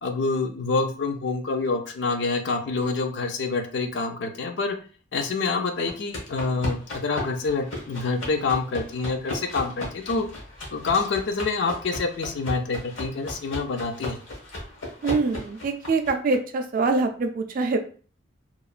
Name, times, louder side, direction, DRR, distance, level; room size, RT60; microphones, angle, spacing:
voice 1, 0.0-4.8 5.1-10.3 10.7-14.2, left 3 dB, 60° left, 6 dB, 0.4 m, -27 dB
sound 1, 5.9-16.4, left 1 dB, 80° left, 1.0 m, -36 dB
voice 2, 15.0-17.8, right 3 dB, 45° right, 6 dB, 0.3 m, -24 dB
2.9 x 2.1 x 2.4 m, 0.40 s
head